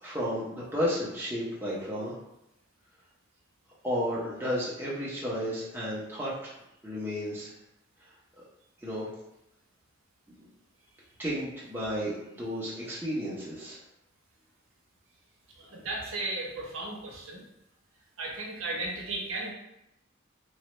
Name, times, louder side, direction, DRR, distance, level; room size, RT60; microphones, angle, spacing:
voice 1, 0.0-2.1 3.8-6.5 6.8-7.5 8.8-9.0 11.2-13.8, equal, 10° right, -7 dB, 0.6 m, -32 dB
voice 2, 15.6-17.4 18.2-19.5, right 2 dB, 75° right, -1 dB, 0.7 m, -35 dB
3.1 x 2.2 x 3.0 m, 0.84 s
head